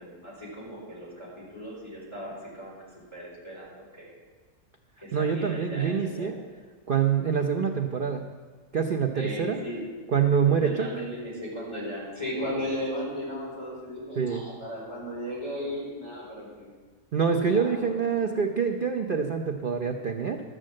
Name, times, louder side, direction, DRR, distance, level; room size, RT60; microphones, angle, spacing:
voice 1, 0.0-2.7 3.1-4.1 5.0-6.3 9.1-9.8 10.5-16.7 17.3-18.2, equal, 15° left, -7 dB, 4.3 m, -36 dB
voice 2, 5.1-6.3 6.9-8.2 8.7-9.6 10.1-10.9 14.2-14.4 17.1-20.4, right 6 dB, 75° right, 4 dB, 0.4 m, -25 dB
12.5 x 6.5 x 7.5 m, 1.4 s
omnidirectional pair, 1.9 m